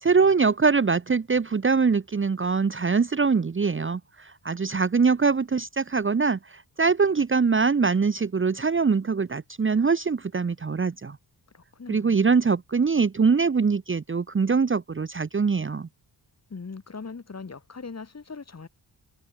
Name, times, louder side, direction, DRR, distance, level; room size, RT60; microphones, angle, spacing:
voice 1, 0.0-11.2 11.9-15.9, right 5 dB, 30° right, 1.0 m, -23 dB
voice 2, 11.5-12.4 16.5-18.7, left 4 dB, 35° left, 5.2 m, -40 dB
wide cardioid pair, 155°, 42 cm